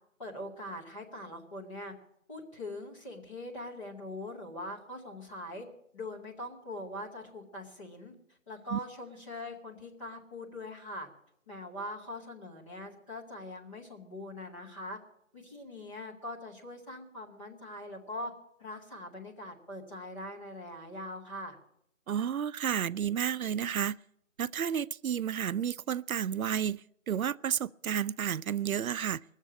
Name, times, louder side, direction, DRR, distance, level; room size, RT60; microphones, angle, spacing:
voice 1, 0.2-1.9 2.3-5.7 5.9-8.1 8.5-11.1 11.5-15.0 15.3-18.3 18.6-21.6, left 1 dB, 25° left, 2.2 m, -42 dB
voice 2, 22.1-24.0 24.4-29.2, right 8 dB, 90° right, 0.5 m, -31 dB
20.0 x 7.3 x 8.4 m
figure-of-eight pair, 170°, 41 cm